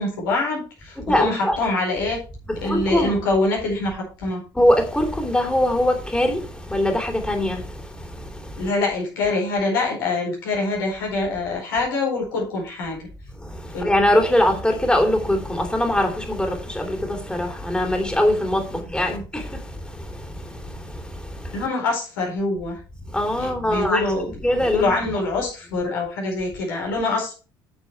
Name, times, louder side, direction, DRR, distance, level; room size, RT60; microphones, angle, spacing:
voice 1, 0.0-2.2 2.6-4.4 8.6-13.1 13.7-13.9 19.1-19.2 21.5-22.8 23.4-24.3 24.7-27.4, left 2 dB, 80° left, 4.5 m, -24 dB
voice 2, 1.0-1.6 2.5-3.2 4.5-8.7 13.4-21.6 23.1-24.1 24.4-24.9, left 1 dB, 10° left, 2.8 m, -22 dB
8.9 x 6.8 x 4.6 m
hypercardioid pair, 55°, 12 cm